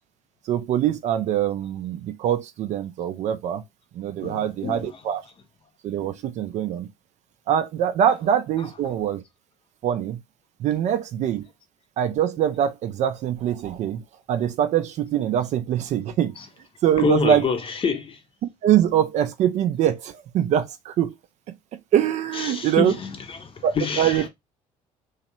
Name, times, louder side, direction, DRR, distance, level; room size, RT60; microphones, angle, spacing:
voice 1, 0.5-3.6 3.9-5.2 5.8-6.9 7.5-9.2 9.8-10.2 10.6-11.5 12.0-14.0 14.3-16.3 16.8-17.5 18.6-21.1 21.7-22.9 23.6-24.3, right 10 dB, 45° right, 0.4 m, -23 dB
voice 2, 4.2-4.9 17.0-18.2 22.4-24.3, left 4 dB, 30° left, 0.7 m, -27 dB
2.9 x 2.4 x 2.9 m
figure-of-eight pair, 55°, 17 cm